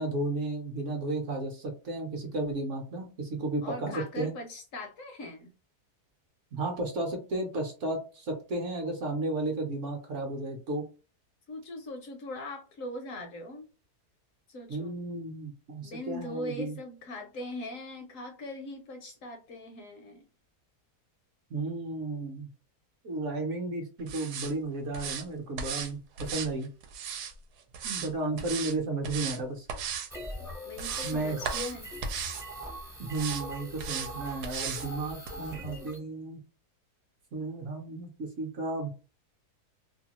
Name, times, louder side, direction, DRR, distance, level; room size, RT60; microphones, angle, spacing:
voice 1, 0.0-4.3 6.5-10.9 14.7-16.8 21.5-22.5 23.0-26.7 27.8-29.7 31.0-31.4 33.0-36.4 37.3-38.9, right 2 dB, 60° right, 2 dB, 0.9 m, -33 dB
voice 2, 3.6-5.5 11.5-13.7 14.5-15.0 15.8-20.3 30.7-31.9, left 1 dB, 70° left, 4 dB, 0.8 m, -41 dB
sound 1, 24.1-24.5 24.9-25.2 25.6-25.9 26.2-27.3 27.7-28.1 28.4-28.7 29.0-29.4 29.7-30.1 30.5-31.2 31.4-31.7 32.0-32.4 33.1-33.4 33.8-34.1 34.4-34.9 35.3-35.4, right 7 dB, 85° right, 1.1 m, -35 dB
sound 2, 30.1-36.0, equal, 5° right, 0.3 m, -41 dB
2.8 x 2.3 x 2.8 m, 0.35 s
omnidirectional pair, 1.7 m